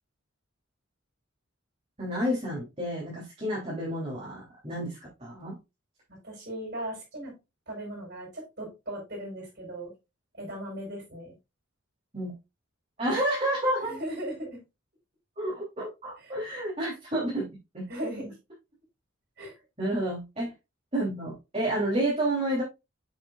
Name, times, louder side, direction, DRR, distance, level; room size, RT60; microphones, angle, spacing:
voice 1, 2.0-5.6 12.1-12.3 13.0-14.0 15.4-17.5 17.7-17.9 19.8-20.5 20.9-22.6, right 1 dB, 30° right, -6 dB, 3.2 m, -30 dB
voice 2, 6.1-7.3 7.7-9.9 10.4-11.3 13.9-14.6 16.2-16.3 17.9-18.4 19.4-19.5, right 1 dB, 50° right, 1 dB, 4.9 m, -38 dB
7.8 x 7.2 x 2.4 m, 0.25 s
head